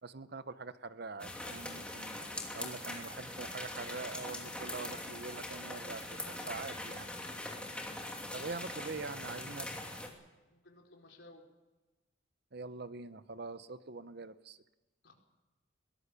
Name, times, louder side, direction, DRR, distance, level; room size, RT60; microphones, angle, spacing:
voice 1, 0.0-2.2 2.5-7.1 8.3-9.7 12.5-14.6, right 3 dB, 50° right, 13 dB, 0.8 m, -44 dB
sound 1, 1.2-10.1, left 1 dB, 5° left, 2.8 m, -42 dB
voice 2, 10.5-11.4 15.0-15.1, left 2 dB, 60° left, 1 dB, 4.4 m, -58 dB
22.5 x 18.0 x 6.9 m, 1.1 s
head